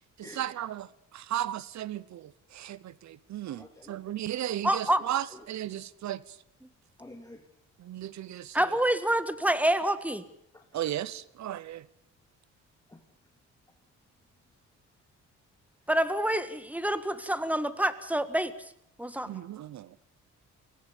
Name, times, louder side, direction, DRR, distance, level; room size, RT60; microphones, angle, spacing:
voice 1, 0.2-6.4 7.8-8.8 10.7-11.9 19.3-20.0, right 12 dB, 65° right, 0.9 m, -35 dB
voice 2, 3.5-3.9 4.9-5.0 5.3-5.5 7.0-7.4 10.5-10.6 12.9-13.0, left 1 dB, 10° left, 2.3 m, -49 dB
voice 3, 4.6-5.0 8.5-10.3 15.9-18.5 19.0-19.4, right 1 dB, 5° right, 1.6 m, -27 dB
24.5 x 17.5 x 7.2 m
cardioid pair, 90°, 30 cm